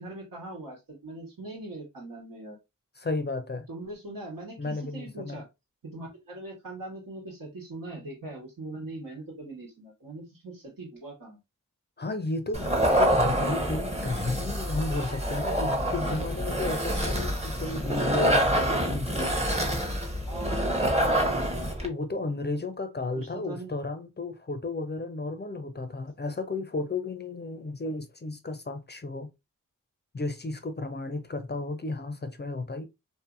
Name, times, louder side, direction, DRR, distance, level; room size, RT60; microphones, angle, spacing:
voice 1, 0.0-2.6 3.7-5.5 5.8-11.4 20.3-20.7 20.9-21.2 23.1-23.7, right 2 dB, 90° right, 1.4 m, -41 dB
voice 2, 3.0-3.7 4.6-5.4 12.0-12.7 13.0-19.4 21.8-29.3 30.1-32.9, left 3 dB, 30° left, 0.4 m, -33 dB
sound 1, 12.5-21.9, equal, 20° right, 0.8 m, -26 dB
2.6 x 2.5 x 2.5 m
wide cardioid pair, 50°, 33 cm